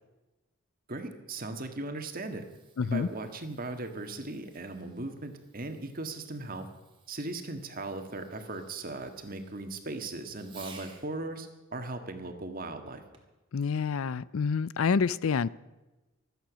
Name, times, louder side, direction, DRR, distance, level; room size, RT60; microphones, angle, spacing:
voice 1, 0.9-2.5 2.8-6.7 7.1-13.0, right 2 dB, 40° right, 1.7 m, -38 dB
Fireworks, 1.9-11.1 13.1-13.5 14.2-14.3, right 5 dB, 25° right, 1.9 m, -57 dB
voice 2, 2.8-3.1 13.5-15.5, left 5 dB, 70° left, 0.5 m, -27 dB
24.5 x 9.1 x 6.3 m
head